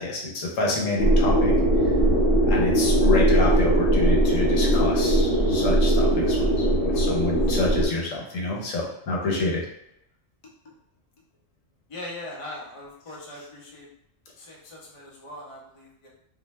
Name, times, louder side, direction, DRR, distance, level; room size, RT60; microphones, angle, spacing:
voice 1, 0.0-1.5 2.4-9.6, left 2 dB, 90° left, -1 dB, 1.1 m, -28 dB
sound 1, 1.0-7.9, right 1 dB, 65° left, 1.0 m, -20 dB
voice 2, 11.9-13.9 14.4-16.1, left 1 dB, 35° left, -4 dB, 0.6 m, -40 dB
2.5 x 2.1 x 3.1 m, 0.79 s
omnidirectional pair, 1.3 m